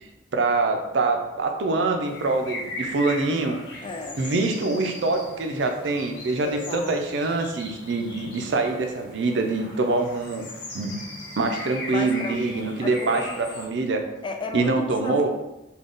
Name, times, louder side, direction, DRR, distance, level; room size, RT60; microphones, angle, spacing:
voice 1, 0.3-3.6 4.2-10.4 10.7-11.0 11.4-14.1 14.5-15.3, right 3 dB, 90° right, 5 dB, 0.5 m, -25 dB
sound 1, 2.0-13.7, left 1 dB, 70° left, 0.9 m, -39 dB
voice 2, 3.8-4.2 6.4-7.0 11.9-12.4 12.9-13.3 14.2-15.3, left 3 dB, 30° left, 4 dB, 0.4 m, -33 dB
3.6 x 2.3 x 3.8 m, 0.96 s
head